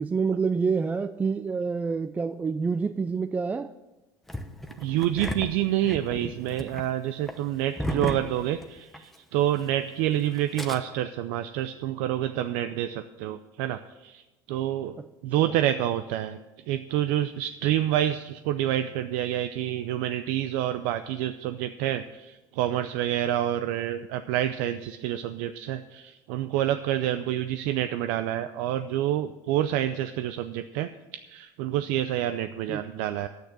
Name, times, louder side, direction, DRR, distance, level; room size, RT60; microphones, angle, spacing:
voice 1, 0.0-3.8 15.0-15.1 15.4-15.5 32.7-32.8, right 5 dB, 15° right, 11 dB, 0.3 m, -27 dB
Engine starting, 4.3-9.2 9.4-9.5 10.3-10.8, equal, ahead, 0.9 m, -35 dB
voice 2, 4.8-16.4 16.7-33.3, right 12 dB, 80° right, 10 dB, 0.5 m, -28 dB
10.5 x 9.1 x 6.0 m, 1.1 s
supercardioid pair, 125°, 9 cm